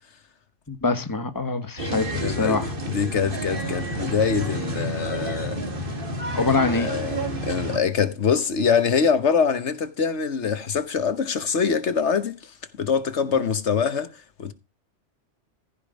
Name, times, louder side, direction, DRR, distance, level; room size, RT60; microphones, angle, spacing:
voice 1, 0.7-2.7 6.3-6.9 13.4-13.5, left 3 dB, 20° left, 1.3 m, -24 dB
sound 1, 1.8-7.8, right 1 dB, 50° right, 2.5 m, -30 dB
voice 2, 2.1-2.6 2.9-5.7 6.4-12.5 12.8-14.1 14.4-14.5, left 6 dB, 75° left, 1.4 m, -24 dB
14.5 x 5.1 x 5.1 m
omnidirectional pair, 1.2 m